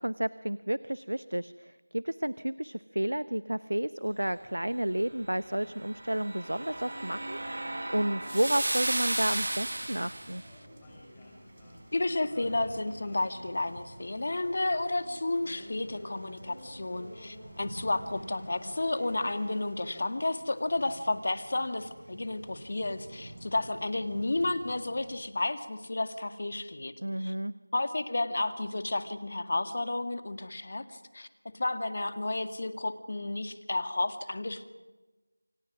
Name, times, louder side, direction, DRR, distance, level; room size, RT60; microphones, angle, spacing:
voice 1, 0.0-10.4 27.0-27.5, right 1 dB, 90° right, 15 dB, 0.9 m, -31 dB
sound 1, 4.1-20.1, left 1 dB, 10° left, 4.1 m, -52 dB
sound 2, 5.8-10.4, right 1 dB, 55° right, 1.3 m, -34 dB
sound 3, 8.5-25.2, right 1 dB, 35° right, 6.2 m, -52 dB
voice 2, 11.9-26.9 27.2-27.3 27.7-31.3 31.5-34.6, left 2 dB, 40° left, 9 dB, 1.9 m, -32 dB
29.0 x 26.5 x 6.2 m, 1.2 s
figure-of-eight pair, 175°, 0 cm